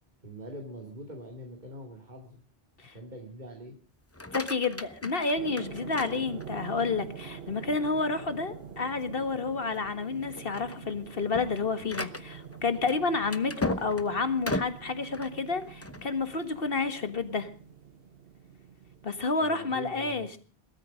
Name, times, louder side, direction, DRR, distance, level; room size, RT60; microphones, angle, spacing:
voice 1, 0.2-2.4 2.9-3.8 19.4-20.4, right 1 dB, 45° right, 2.7 m, -43 dB
sound 1, 4.0-6.8 7.3-7.8 8.2-8.3 8.8-8.9 9.6-9.9 10.2-16.1, left 1 dB, 15° left, 0.8 m, -37 dB
voice 2, 4.3-17.5 19.0-20.4, left 4 dB, 65° left, 1.9 m, -30 dB
sound 2, 5.3-19.3, right 7 dB, 70° right, 1.3 m, -46 dB
20.0 x 13.5 x 5.2 m
omnidirectional pair, 1.1 m